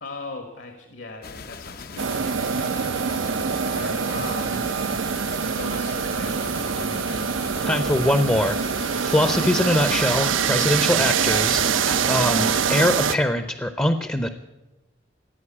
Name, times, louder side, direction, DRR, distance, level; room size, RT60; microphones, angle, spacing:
voice 1, 0.0-2.3 3.7-4.7 5.5-7.4, left 3 dB, 70° left, 5 dB, 1.6 m, -38 dB
sound 1, 1.2-12.6, left 5 dB, 50° left, 0.6 m, -40 dB
sound 2, 2.0-13.2, right 6 dB, 90° right, 0.7 m, -24 dB
voice 2, 7.6-14.3, left 1 dB, 10° left, 9 dB, 0.6 m, -23 dB
16.0 x 9.2 x 8.6 m, 1.1 s
head